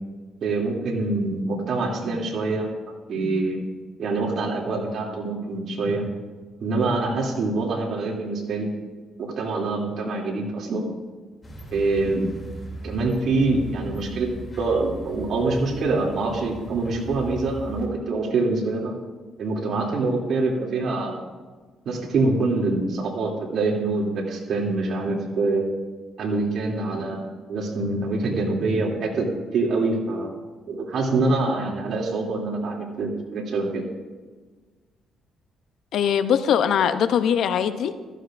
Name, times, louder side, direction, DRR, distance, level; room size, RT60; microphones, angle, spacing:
voice 1, 0.4-2.7 3.1-3.6 4.0-6.1 6.6-8.7 9.2-10.9 11.7-12.3 12.8-18.9 19.4-21.2 21.8-25.7 26.2-30.3 30.7-33.8, right 3 dB, 60° right, -1 dB, 2.7 m, -25 dB
sound 1, 11.4-17.9, right 1 dB, 30° left, 2.8 m, -39 dB
voice 2, 35.9-37.9, left 8 dB, 70° left, 11 dB, 0.6 m, -21 dB
15.0 x 14.0 x 2.5 m, 1.4 s
cardioid pair, 105°, 0 cm